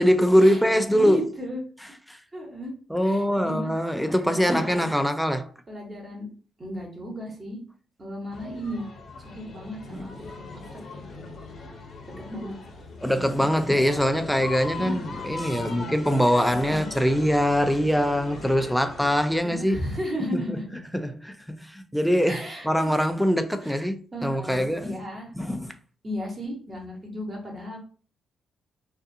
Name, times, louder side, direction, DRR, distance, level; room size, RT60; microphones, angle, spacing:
voice 1, 0.0-1.2 2.1-2.2 2.9-5.5 9.9-10.1 13.0-19.8 20.3-20.6 20.9-25.0 25.4-25.7, equal, ahead, 0.3 m, -23 dB
voice 2, 0.9-1.6 2.3-2.7 3.0-3.7 4.3-4.9 5.7-6.3 6.6-7.6 8.0-8.8 9.2-10.6 11.1-11.3 12.3-12.6 14.8-15.0 15.5-15.9 16.6-16.9 19.4-20.8 22.3-22.9 23.6-23.8 24.1-25.3 26.0-27.8, equal, 30° right, 1.0 m, -35 dB
sound 1, 8.3-19.4, left 3 dB, 50° left, 0.7 m, -40 dB
2.4 x 2.4 x 2.6 m
cardioid pair, 90°, 0 cm